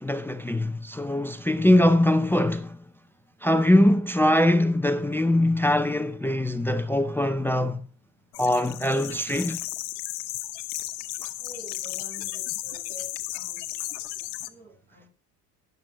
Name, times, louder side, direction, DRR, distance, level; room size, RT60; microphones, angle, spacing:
voice 1, 0.0-2.8 3.4-7.8 8.4-9.6 11.2-11.3, left 1 dB, 5° left, 0.6 m, -22 dB
sound 1, 8.3-14.5, left 17 dB, 75° left, 1.0 m, -34 dB
voice 2, 11.4-13.8 14.5-15.1, right 1 dB, 85° right, 7.5 m, -47 dB
10.5 x 7.3 x 5.8 m
supercardioid pair, 100°, 43 cm